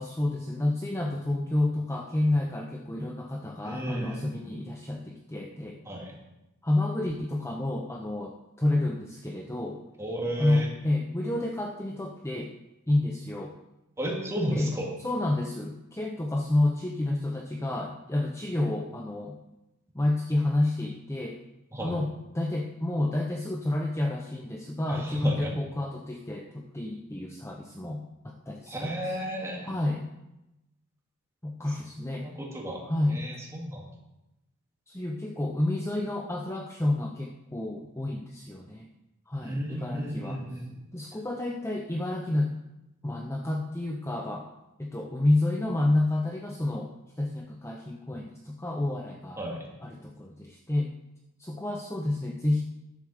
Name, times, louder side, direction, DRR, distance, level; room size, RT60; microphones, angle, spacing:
voice 1, 0.0-5.8 6.6-9.8 10.4-12.5 12.9-13.5 14.6-14.7 15.0-19.4 19.9-21.4 21.8-22.1 22.3-29.2 29.6-30.1 31.4-32.3 32.8-33.3 34.9-38.9 39.3-40.4 40.9-42.5 43.0-44.5 44.8-46.9 47.2-49.4 49.8-50.9 51.4-52.6, left 1 dB, 10° left, 1 dB, 0.7 m, -29 dB
voice 2, 3.6-4.5 5.9-6.1 10.0-10.7 14.0-14.9 21.7-22.0 24.9-25.5 28.7-29.7 32.2-32.8 33.1-33.8 39.4-40.6 49.4-49.6, right 1 dB, 15° right, -2 dB, 2.3 m, -33 dB
11.0 x 7.2 x 6.5 m, 0.94 s
head